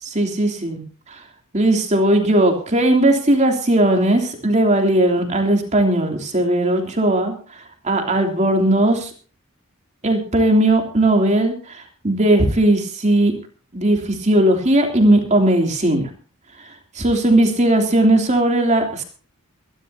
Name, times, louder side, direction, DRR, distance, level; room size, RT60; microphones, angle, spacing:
voice 1, 0.0-1.2 1.5-9.1 10.0-13.3 13.7-16.1 16.6-19.0, right 1 dB, 35° right, 2 dB, 3.2 m, -18 dB
24.0 x 12.5 x 2.9 m, 0.39 s
head